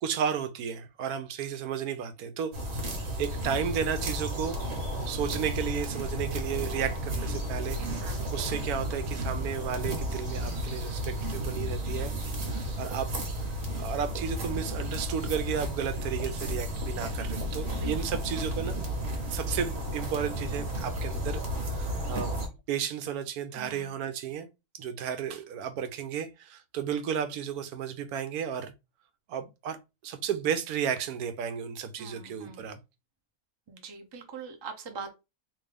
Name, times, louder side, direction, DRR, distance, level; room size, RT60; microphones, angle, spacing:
voice 1, 0.0-2.5 3.2-4.6 5.1-7.8 8.3-12.1 12.5-13.1 13.8-18.8 19.3-21.4 21.7-24.5 24.7-28.7 29.3-29.8 30.0-32.8, right 8 dB, 80° right, 1.1 m, -33 dB
sound 1, 2.5-22.5, equal, 60° right, 1.4 m, -33 dB
voice 2, 8.0-8.4 17.7-17.9 23.6-23.9 32.0-32.6 33.7-35.1, right 5 dB, 35° right, 0.4 m, -43 dB
3.6 x 2.6 x 3.2 m
omnidirectional pair, 1.6 m